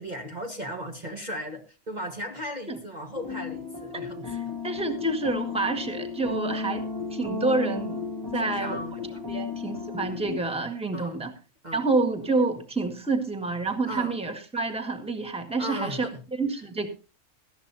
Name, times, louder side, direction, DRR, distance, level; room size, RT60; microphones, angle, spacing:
voice 1, 0.0-4.3 8.4-9.3 10.9-11.2 11.6-11.9 13.8-14.1 15.6-16.2, equal, 30° right, 3 dB, 1.6 m, -36 dB
sound 1, 3.2-10.4, left 4 dB, 15° left, 2.1 m, -34 dB
voice 2, 3.9-8.0 8.3-8.8 9.3-11.3 11.7-16.1 16.4-16.9, right 3 dB, 5° right, 5 dB, 1.7 m, -28 dB
18.5 x 14.0 x 2.7 m, 0.32 s
omnidirectional pair, 1.5 m